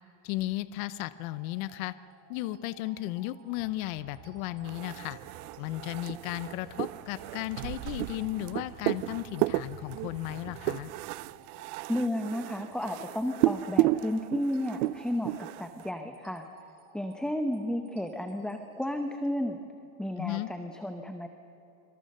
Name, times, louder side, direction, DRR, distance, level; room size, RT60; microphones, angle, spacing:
voice 1, 0.2-1.9 2.3-5.2 5.6-10.9 20.2-20.5, left 16 dB, 65° left, 15 dB, 0.9 m, -35 dB
sound 1, 0.8-19.3, right 5 dB, 40° right, 3.8 m, -57 dB
sound 2, 3.6-10.9, right 6 dB, 60° right, 5.4 m, -51 dB
sound 3, 4.7-15.9, right 17 dB, 75° right, 0.7 m, -33 dB
voice 2, 11.9-16.4 16.9-19.6 20.0-21.3, left 1 dB, ahead, 6 dB, 0.9 m, -32 dB
26.0 x 25.0 x 6.6 m, 2.9 s
supercardioid pair, 145°, 43 cm